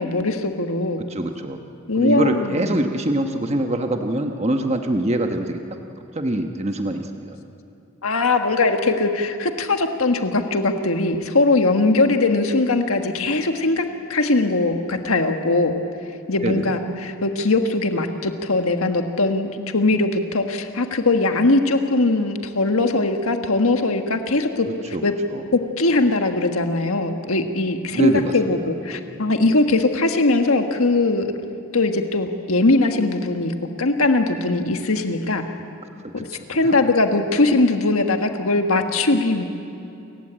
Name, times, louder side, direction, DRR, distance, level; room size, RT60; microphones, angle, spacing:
voice 1, 0.0-1.0 1.9-2.8 8.0-13.8 14.1-15.7 16.3-25.1 25.5-31.3 31.7-35.4 36.1-39.4, left 2 dB, 80° left, 5 dB, 1.6 m, -20 dB
voice 2, 1.1-1.6 2.0-5.6 6.1-7.4 16.4-16.8 24.9-25.0 25.3-25.4 27.9-28.6 36.0-36.2 36.6-36.8, right 1 dB, 30° right, 5 dB, 1.1 m, -24 dB
28.0 x 15.0 x 8.8 m, 2.7 s
head